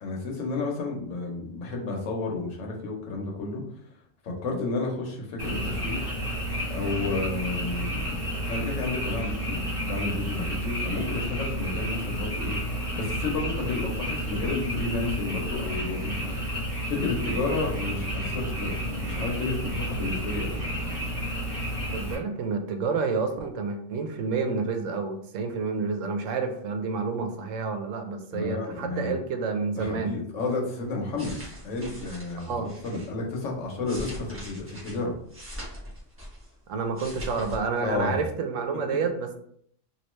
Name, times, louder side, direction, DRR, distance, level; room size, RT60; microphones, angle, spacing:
voice 1, 0.0-3.6 4.2-6.1 6.7-12.6 12.9-20.6 28.3-29.1 29.8-31.4 31.6-35.2 37.8-38.2, left 3 dB, 80° left, 0 dB, 1.2 m, -31 dB
Frog, 5.4-22.1, equal, 50° right, 1.5 m, -31 dB
voice 2, 21.9-30.2 32.5-32.7 36.7-39.4, right 4 dB, 85° right, 6 dB, 1.0 m, -29 dB
sound 1, 31.1-33.1 33.6-36.5 36.8-37.6 37.9-38.1, equal, 10° right, 0.9 m, -41 dB
3.1 x 2.7 x 3.0 m, 0.65 s
omnidirectional pair, 1.3 m